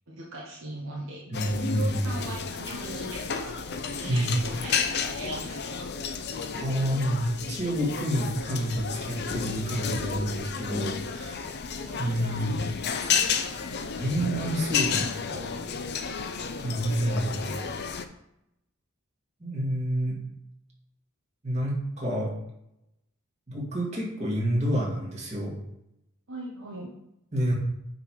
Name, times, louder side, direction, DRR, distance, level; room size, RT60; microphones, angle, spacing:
voice 1, 0.1-1.5 1.7-3.6 3.9-5.9 11.7-12.0 26.3-26.9, right 1 dB, 60° right, -3 dB, 1.2 m, -40 dB
sound 1, 1.3-18.1, left 6 dB, 50° left, 0.6 m, -32 dB
voice 2, 1.3-2.1 4.1-4.4 6.5-11.4 12.0-12.6 14.0-15.5 16.6-17.5 19.4-20.2 21.4-22.3 23.5-25.5 27.3-27.5, equal, 30° right, -4 dB, 2.3 m, -28 dB
8.8 x 3.9 x 4.8 m, 0.82 s
head